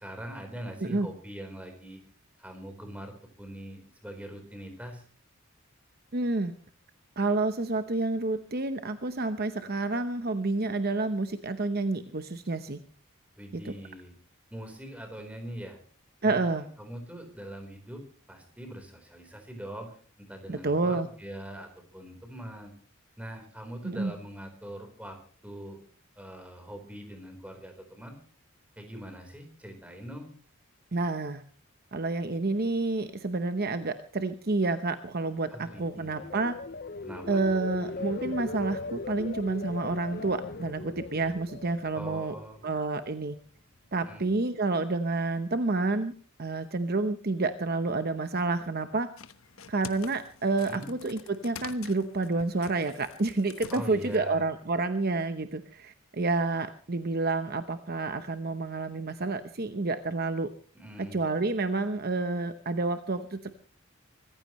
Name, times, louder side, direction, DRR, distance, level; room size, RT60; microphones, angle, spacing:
voice 1, 0.0-2.0 2.4-5.0 13.4-14.1 14.5-15.8 16.2-18.0 18.3-22.7 23.2-25.2 25.4-25.8 26.2-28.2 28.8-30.3 35.5-36.3 37.0-37.7 41.9-42.6 44.0-44.3 50.6-50.9 53.7-54.4 60.7-61.2, equal, 5° right, 5 dB, 4.1 m, -42 dB
voice 2, 6.1-6.5 7.2-12.8 13.5-13.7 16.2-16.7 20.5-21.1 23.8-24.1 30.9-31.4 31.9-36.6 37.3-42.3 42.6-43.4 43.9-46.1 46.4-49.1 49.7-60.5 61.0-63.5, right 3 dB, 45° right, 9 dB, 0.9 m, -29 dB
sound 1, 35.5-42.7 43.1-43.4, left 3 dB, 45° left, 0.7 m, -39 dB
sound 2, 49.2-54.3, left 6 dB, 70° left, 1.1 m, -46 dB
25.0 x 15.0 x 3.1 m, 0.43 s
head